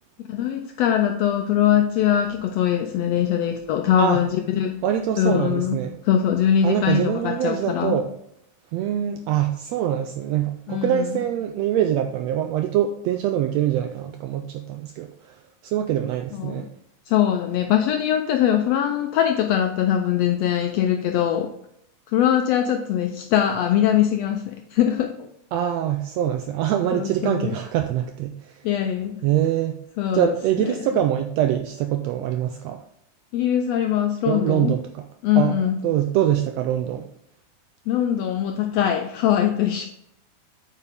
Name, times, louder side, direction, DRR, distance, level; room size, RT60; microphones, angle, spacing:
voice 1, 0.3-4.8 5.2-8.0 10.7-11.2 16.3-16.7 17.1-21.5 22.1-25.3 26.9-27.6 28.6-29.2 30.0-30.8 33.3-34.7 35.2-35.9 37.9-39.9, left 10 dB, 85° left, 5 dB, 1.4 m, -22 dB
voice 2, 4.8-6.0 6.6-8.1 8.7-15.1 15.6-16.7 25.5-28.5 29.2-29.8 30.1-32.8 34.2-35.1 35.4-37.1, right 11 dB, 85° right, 6 dB, 1.5 m, -24 dB
8.4 x 5.6 x 3.4 m, 0.77 s
omnidirectional pair, 3.4 m